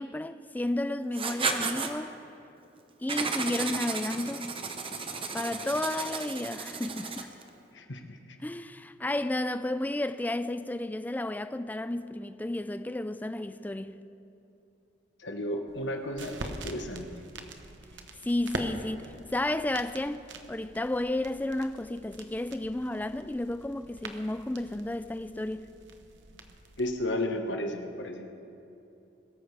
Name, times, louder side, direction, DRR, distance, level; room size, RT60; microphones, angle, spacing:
voice 1, 0.0-2.1 3.0-4.5 5.3-7.3 8.4-13.9 18.2-25.7, left 1 dB, 10° left, 0.4 m, -32 dB
Writing, 1.1-1.9 3.1-7.4, right 4 dB, 30° right, 0.9 m, -33 dB
voice 2, 7.7-8.2 15.2-17.1 26.8-28.3, left 1 dB, 85° left, 1.3 m, -33 dB
sound 1, 15.7-26.9, right 2 dB, 85° right, 1.0 m, -44 dB
22.0 x 13.5 x 3.4 m
head